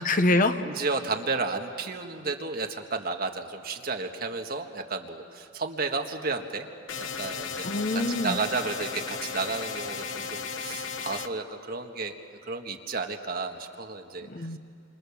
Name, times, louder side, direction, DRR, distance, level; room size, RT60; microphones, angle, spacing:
voice 1, 0.0-0.6 7.6-8.4 14.2-14.6, left 2 dB, 45° left, 8 dB, 1.0 m, -25 dB
voice 2, 0.6-6.7 7.2-12.1 12.5-14.5, right 4 dB, 50° right, 4 dB, 1.7 m, -32 dB
sound 1, 6.9-11.3, left 6 dB, 80° left, 1.0 m, -35 dB
29.0 x 26.0 x 7.2 m, 2.3 s
head